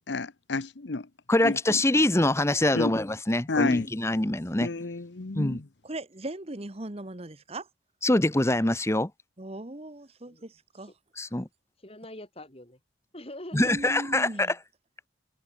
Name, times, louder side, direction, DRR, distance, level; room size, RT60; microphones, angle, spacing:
voice 1, 0.1-1.1 1.4-1.6 2.7-2.9 3.5-3.9 4.6-5.6, left 3 dB, 60° left, 0.9 m, -30 dB
voice 2, 1.3-4.7 5.3-5.6 8.0-9.1 11.2-11.5 13.5-14.5, left 1 dB, 15° left, 1.0 m, -24 dB
voice 3, 5.8-7.7 9.4-10.9 13.5-14.5, right 1 dB, 30° right, 1.4 m, -38 dB
voice 4, 11.8-12.8 13.1-13.9 14.3-14.5, left 1 dB, 30° left, 4.7 m, -44 dB
head